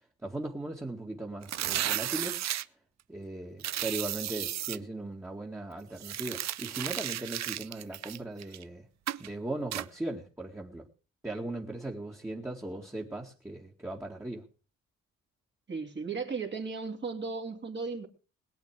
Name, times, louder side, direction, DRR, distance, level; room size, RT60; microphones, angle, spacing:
voice 1, 0.2-2.4 3.1-8.9 9.2-10.9 11.2-14.4, right 2 dB, 10° right, -1 dB, 2.0 m, -38 dB
sound 1, 1.4-2.6 3.6-4.8 6.0-8.6 9.1-9.3 9.7-9.9, right 13 dB, 60° right, 0.7 m, -34 dB
voice 2, 15.7-18.1, right 4 dB, 35° right, 2 dB, 2.6 m, -35 dB
21.0 x 8.4 x 4.9 m, 0.36 s
cardioid pair, 90°, 30 cm